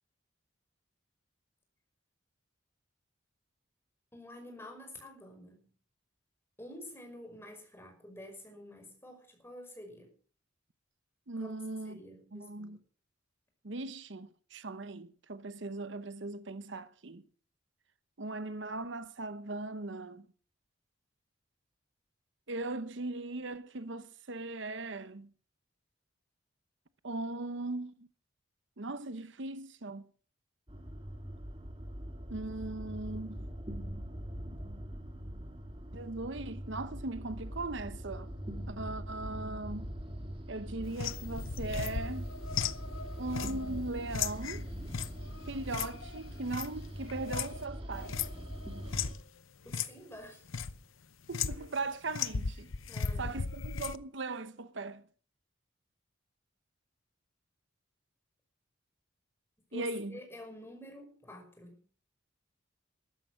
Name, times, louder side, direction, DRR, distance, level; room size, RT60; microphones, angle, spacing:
voice 1, 4.1-5.7 6.6-10.1 11.4-11.5 11.8-12.8 48.3-48.4 49.6-50.5 52.9-53.3 59.7-61.8, left 1 dB, 10° left, 5.4 m, -49 dB
voice 2, 11.3-12.0 12.3-12.8 13.6-17.3 18.2-20.3 22.5-25.3 27.0-28.1 28.8-30.1 32.3-33.5 35.9-38.3 38.7-39.9 40.5-42.3 43.2-44.7 45.5-48.2 51.3-52.7 53.2-55.0 59.7-60.2, right 2 dB, 65° right, 0.9 m, -39 dB
sound 1, 30.7-49.1, equal, 25° right, 2.2 m, -42 dB
sound 2, 40.9-47.6 47.9-49.2 49.7-49.9 50.2-50.8 51.3-51.8 52.1-54.0, left 6 dB, 85° left, 0.8 m, -37 dB
13.5 x 13.0 x 6.3 m
head